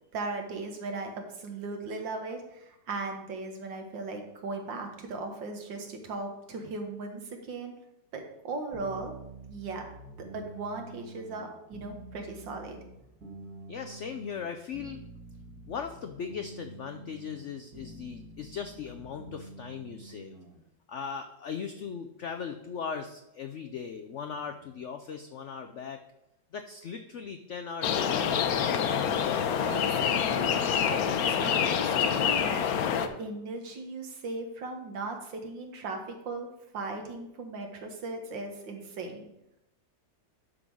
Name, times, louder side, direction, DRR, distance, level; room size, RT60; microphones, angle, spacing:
voice 1, 0.1-7.7 8.1-9.1 9.5-9.9 10.3-12.8 29.7-32.6 33.0-36.5 36.7-39.2, right 3 dB, 80° right, 3 dB, 2.0 m, -38 dB
sound 1, 8.7-20.6, right 2 dB, 55° right, 2.1 m, -47 dB
voice 2, 13.7-15.0 15.7-20.4 20.9-26.0 26.5-29.0, left 6 dB, 85° left, 7 dB, 0.6 m, -39 dB
sound 2, 27.8-33.1, left 8 dB, 65° left, 1.0 m, -26 dB
11.0 x 3.8 x 6.2 m, 0.86 s
omnidirectional pair, 2.0 m